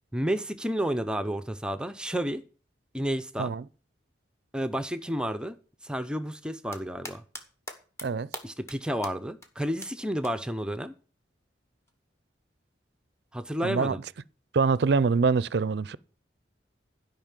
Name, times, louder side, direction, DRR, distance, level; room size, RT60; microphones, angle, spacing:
voice 1, 0.1-2.4 2.9-3.5 4.5-5.6 5.8-7.2 8.4-10.9 13.3-14.0, equal, 5° right, 0.5 m, -31 dB
sound 1, 6.4-7.4 7.7-8.1 8.3-8.8 9.0-9.1 9.4-9.5 9.8-9.9 10.2-10.3 11.9-12.0, left 1 dB, 15° left, 1.2 m, -39 dB
voice 2, 13.6-14.0 14.5-16.0, right 4 dB, 60° right, 0.4 m, -24 dB
12.5 x 5.4 x 7.3 m
head